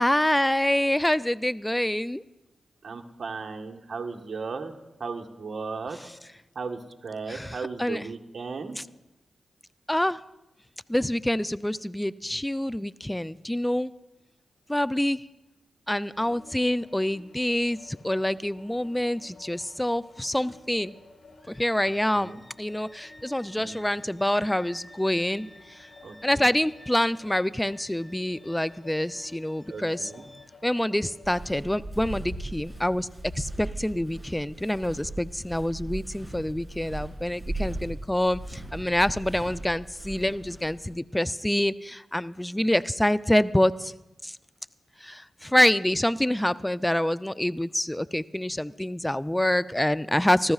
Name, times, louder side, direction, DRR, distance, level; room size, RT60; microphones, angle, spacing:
voice 1, 0.0-2.2 7.3-8.1 8.8-8.9 9.9-10.2 10.9-13.9 14.7-15.2 15.9-20.9 21.5-30.1 30.6-33.1 33.4-43.9 44.2-44.3 45.0-50.5, left 1 dB, 10° left, 16 dB, 0.5 m, -26 dB
voice 2, 2.8-4.7 5.0-6.0 6.5-8.8 22.1-22.4 23.6-23.9 26.0-26.5 29.7-30.3, right 4 dB, 60° right, 3 dB, 1.3 m, -36 dB
sound 1, 16.0-31.6, left 3 dB, 70° left, 5.7 m, -53 dB
Walk footsteps, 31.2-40.9, right 2 dB, 5° right, 4.6 m, -38 dB
26.0 x 14.5 x 2.4 m, 0.98 s
supercardioid pair, 45°, 0 cm